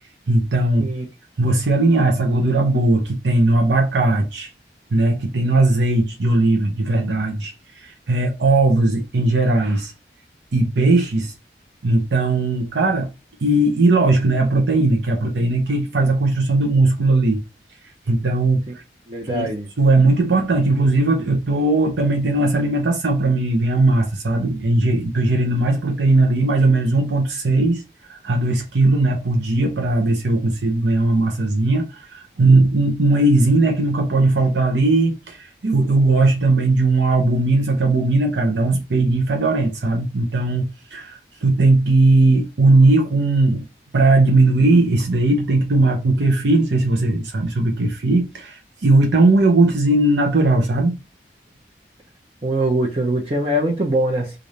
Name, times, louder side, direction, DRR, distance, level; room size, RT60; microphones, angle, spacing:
voice 1, 0.3-0.9 1.4-4.5 4.9-9.9 10.5-11.3 11.8-13.1 13.4-17.4 18.1-18.8 19.2-19.5 19.8-43.6 43.9-51.0, right 2 dB, 90° right, 0.7 m, -18 dB
voice 2, 19.1-19.7 52.4-54.4, right 1 dB, 35° right, 0.6 m, -22 dB
3.2 x 2.5 x 3.9 m
head